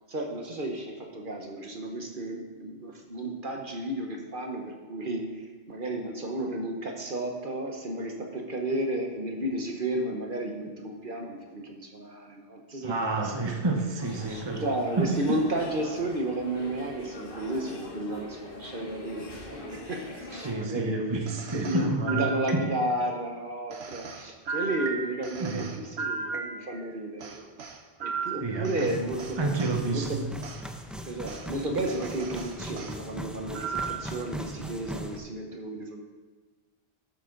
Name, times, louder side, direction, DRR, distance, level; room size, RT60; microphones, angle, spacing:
voice 1, 0.1-13.6 14.2-21.1 21.5-27.5 28.0-29.5 29.9-30.3 31.1-36.0, right 1 dB, 55° right, 1 dB, 1.2 m, -33 dB
voice 2, 12.8-14.6 15.0-15.4 20.4-22.3 22.5-22.6 25.4-25.7 28.4-28.9 29.4-30.1, right 3 dB, 25° right, 2 dB, 1.0 m, -29 dB
sound 1, 14.0-20.5, left 2 dB, 55° left, 1.8 m, -42 dB
sound 2, 21.3-23.0 23.7-26.9 27.2-29.8 30.4-30.6 31.3-31.5 31.9-33.0 33.5-34.1, right 5 dB, 75° right, 1.2 m, -36 dB
sound 3, 28.9-35.2, equal, ahead, 0.5 m, -40 dB
12.0 x 8.2 x 3.9 m, 1.3 s
omnidirectional pair, 1.1 m